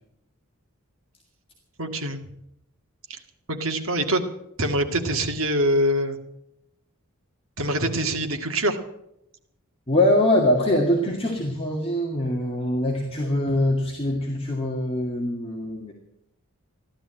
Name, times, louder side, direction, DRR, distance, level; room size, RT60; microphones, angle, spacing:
voice 1, 1.8-2.2 3.1-3.2 3.5-4.2 4.6-6.2 7.6-8.8, right 1 dB, 70° right, 5 dB, 2.0 m, -24 dB
voice 2, 9.9-15.9, left 1 dB, 25° left, -2 dB, 2.1 m, -23 dB
15.5 x 12.0 x 7.8 m, 0.81 s
head